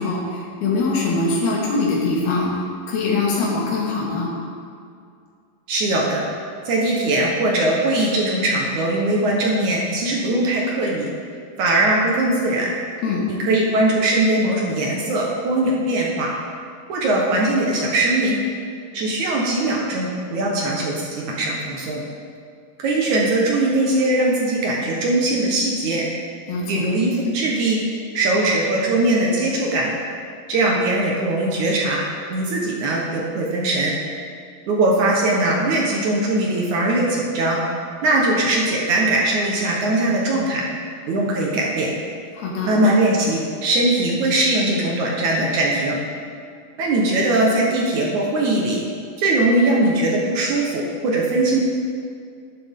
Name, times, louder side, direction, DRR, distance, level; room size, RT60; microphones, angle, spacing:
voice 1, 0.0-2.5 2.9-4.3 13.0-13.3 26.5-26.8 42.4-42.7, left 3 dB, 80° left, -4 dB, 4.0 m, -22 dB
voice 2, 5.7-6.2 6.7-11.1 11.6-12.7 13.3-16.3 16.9-18.4 18.9-22.0 22.8-26.1 26.7-27.8 28.1-29.9 30.5-32.0 32.3-33.9 34.7-37.6 38.0-40.6 41.1-41.9 42.6-46.0 46.8-48.8 49.2-51.6, right 2 dB, 60° right, -2 dB, 2.4 m, -20 dB
12.5 x 11.0 x 3.7 m, 2.3 s
omnidirectional pair, 4.4 m